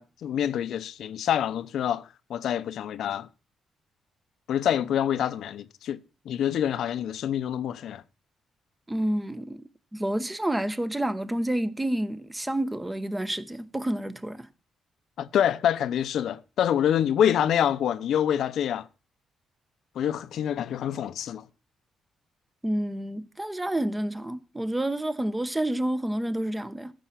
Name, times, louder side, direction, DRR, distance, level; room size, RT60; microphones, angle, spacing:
voice 1, 0.0-3.3 4.5-6.0 6.2-8.0 15.2-18.9 19.9-21.4, left 10 dB, 75° left, 0.8 m, -26 dB
voice 2, 8.9-9.6 9.9-14.5 22.6-26.9, right 1 dB, 10° right, 0.9 m, -29 dB
14.0 x 6.3 x 5.8 m
cardioid pair, 115°, 0 cm